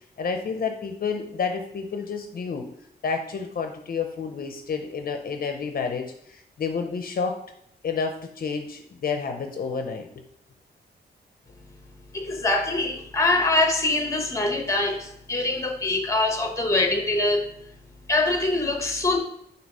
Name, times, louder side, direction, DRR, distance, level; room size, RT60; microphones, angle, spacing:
voice 1, 0.2-2.7 3.0-7.4 7.8-10.1, left 5 dB, 55° left, 5 dB, 0.6 m, -30 dB
voice 2, 12.1-17.5 18.1-19.2, left 2 dB, 15° left, 4 dB, 0.9 m, -24 dB
6.2 x 2.8 x 5.4 m, 0.73 s
wide cardioid pair, 135°, 18 cm